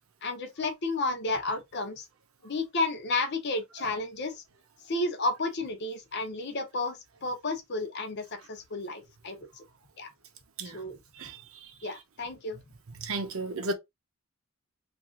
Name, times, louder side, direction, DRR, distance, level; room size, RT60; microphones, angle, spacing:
voice 1, 0.2-2.0 2.4-4.4 4.9-9.6 10.0-10.1 10.7-11.0 11.8-12.6, left 2 dB, 55° left, 0.8 m, -32 dB
voice 2, 13.0-13.7, right 2 dB, 75° right, 0.7 m, -32 dB
2.9 x 2.5 x 3.7 m
head